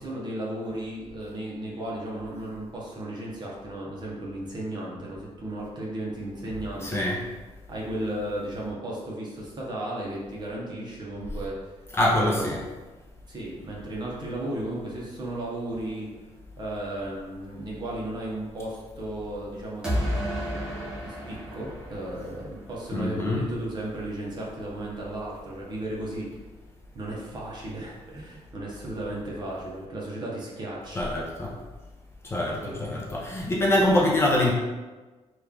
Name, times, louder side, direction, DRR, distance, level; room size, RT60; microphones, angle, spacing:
voice 1, 0.0-7.0 7.7-11.7 12.1-12.5 13.3-16.1 16.6-26.4 26.9-31.0 32.6-32.9, right 1 dB, 40° right, -4 dB, 0.8 m, -35 dB
voice 2, 6.8-7.2 11.9-12.6 22.9-23.5 31.0-31.5 32.2-34.5, left 1 dB, 25° left, -3 dB, 0.5 m, -24 dB
sound 1, 19.8-22.7, equal, 5° right, 0.9 m, -31 dB
3.0 x 2.4 x 3.6 m, 1.2 s
wide cardioid pair, 165°, 11 cm